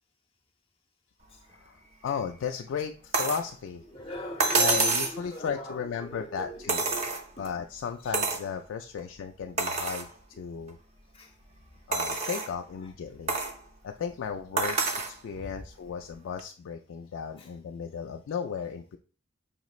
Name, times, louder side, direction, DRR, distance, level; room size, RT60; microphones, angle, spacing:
voice 1, 1.5-3.8 4.5-6.8 7.4-10.1 10.4-10.8 11.9-13.3 13.8-19.0, left 6 dB, 85° left, 0.3 m, -35 dB
sound 1, 3.1-3.5 4.4-5.2 6.7-7.5 8.1-8.5 9.0-9.1 9.6-10.1 10.7-10.8 11.9-12.5 13.3-13.6 14.6-15.2 16.4-16.5, right 3 dB, 35° right, 0.5 m, -27 dB
voice 2, 3.9-4.9 5.3-5.8 6.1-7.5 11.1-11.3, equal, 30° left, 0.8 m, -38 dB
5.1 x 3.0 x 2.4 m
head